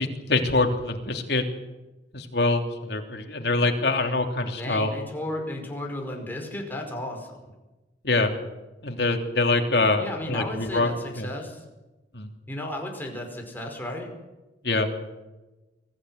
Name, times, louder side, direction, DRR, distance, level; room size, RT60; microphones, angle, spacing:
voice 1, 0.0-1.4 2.1-4.9 8.0-8.3 8.8-10.9 11.1-11.3 12.1-12.3 14.6-14.9, left 2 dB, 65° left, 4 dB, 3.2 m, -24 dB
voice 2, 4.6-7.5 10.0-11.6 12.5-14.1, left 1 dB, 10° left, 1 dB, 5.1 m, -34 dB
24.0 x 15.5 x 9.4 m, 1.1 s
head